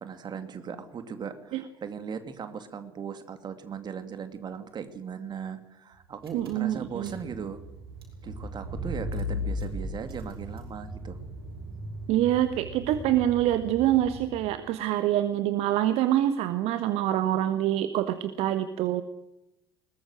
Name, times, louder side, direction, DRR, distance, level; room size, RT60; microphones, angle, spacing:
voice 1, 0.0-7.6 8.2-11.2, right 6 dB, 35° right, 9 dB, 2.6 m, -38 dB
Car / Engine, 6.2-14.6, left 1 dB, 75° right, 5.8 m, -37 dB
voice 2, 6.3-7.1 12.1-19.0, right 12 dB, 50° right, 12 dB, 1.3 m, -25 dB
21.0 x 20.0 x 6.4 m, 0.92 s
figure-of-eight pair, 60°, 13 cm